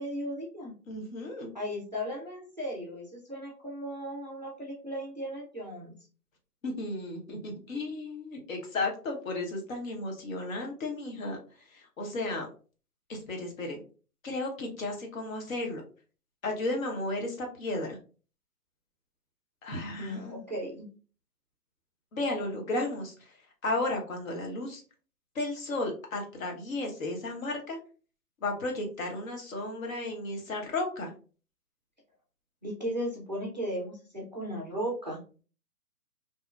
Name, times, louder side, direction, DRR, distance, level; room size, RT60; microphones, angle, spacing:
voice 1, 0.0-0.7 1.5-6.0 20.0-20.9 32.6-35.2, equal, 30° right, -1 dB, 0.3 m, -36 dB
voice 2, 0.9-1.5 6.6-11.4 11.7-12.5 13.1-13.8 14.2-15.8 16.4-18.0 19.6-20.5 22.1-23.4 23.6-24.8 25.3-27.8 28.4-31.1, left 2 dB, 55° left, 2 dB, 1.1 m, -34 dB
2.8 x 2.3 x 2.3 m, 0.37 s
hypercardioid pair, 145°, 48 cm